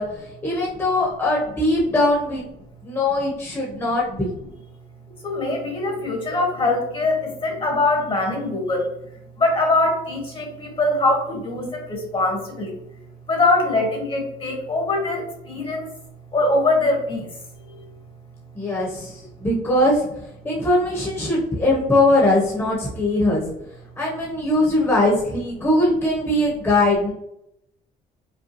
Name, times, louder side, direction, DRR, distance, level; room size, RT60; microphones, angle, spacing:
voice 1, 0.0-2.4 2.8-4.3 18.5-20.1 20.4-23.4 24.0-27.1, left 1 dB, 15° left, -4 dB, 1.1 m, -21 dB
voice 2, 5.2-8.9 9.4-12.8 13.3-15.9 16.3-17.3 17.7-17.8, left 2 dB, 30° left, 1 dB, 1.3 m, -22 dB
5.4 x 2.2 x 3.1 m, 0.81 s
cardioid pair, 110°, 17 cm